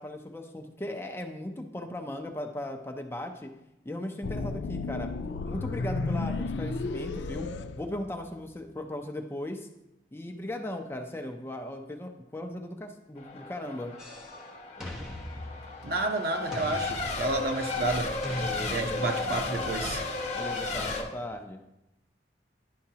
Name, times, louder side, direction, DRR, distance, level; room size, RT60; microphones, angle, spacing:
voice 1, 0.0-3.5 3.8-5.1 5.4-7.5 7.8-9.7 10.1-13.9 18.4-19.3 20.3-21.6, left 1 dB, 15° left, 0.5 m, -37 dB
sound 1, 4.2-8.5, left 3 dB, 85° left, 0.4 m, -33 dB
Race car auto racing / Accelerating revving vroom / Mechanisms, 13.2-21.0, left 3 dB, 40° left, 0.9 m, -34 dB
sound 2, 14.0-14.4 14.8-16.1 16.5-17.6 18.2-19.3, equal, 5° right, 1.1 m, -39 dB
voice 2, 15.8-18.2 18.7-20.0, right 2 dB, 60° right, 0.8 m, -30 dB
10.0 x 5.7 x 2.8 m
head